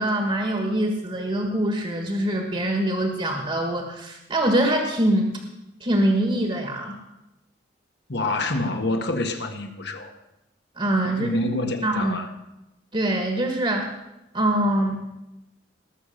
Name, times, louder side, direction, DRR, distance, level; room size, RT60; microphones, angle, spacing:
voice 1, 0.0-5.3 5.8-6.9 10.8-11.3 11.8-12.2 12.9-13.9 14.3-15.0, right 1 dB, 30° right, 2 dB, 1.6 m, -23 dB
voice 2, 8.1-10.1 11.0-12.3, left 2 dB, 65° left, 5 dB, 1.6 m, -27 dB
19.5 x 6.9 x 6.5 m, 0.95 s
head